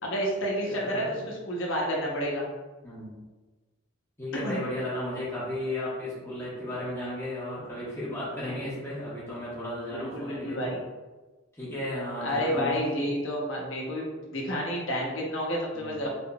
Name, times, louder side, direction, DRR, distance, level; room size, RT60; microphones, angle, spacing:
voice 1, 0.0-2.5 4.3-4.6 9.9-10.8 12.2-16.1, equal, 70° left, -2 dB, 1.0 m, -30 dB
voice 2, 0.6-1.2 2.8-3.2 4.2-10.7 11.5-13.1 15.7-16.0, left 1 dB, 15° left, -8 dB, 1.3 m, -35 dB
4.0 x 3.6 x 2.4 m, 1.2 s
head